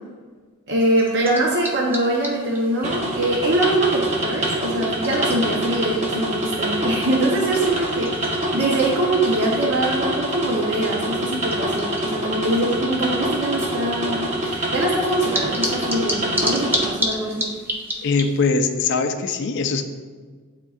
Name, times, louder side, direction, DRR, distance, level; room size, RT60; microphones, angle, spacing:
voice 1, 0.7-17.5, right 1 dB, 55° right, -2 dB, 0.8 m, -23 dB
sound 1, 0.8-18.5, equal, 10° right, 0.5 m, -34 dB
sound 2, 2.8-16.9, right 1 dB, 35° right, 1.1 m, -25 dB
voice 2, 18.0-19.9, left 4 dB, 55° left, 5 dB, 0.4 m, -21 dB
11.0 x 3.7 x 2.4 m, 1.5 s
head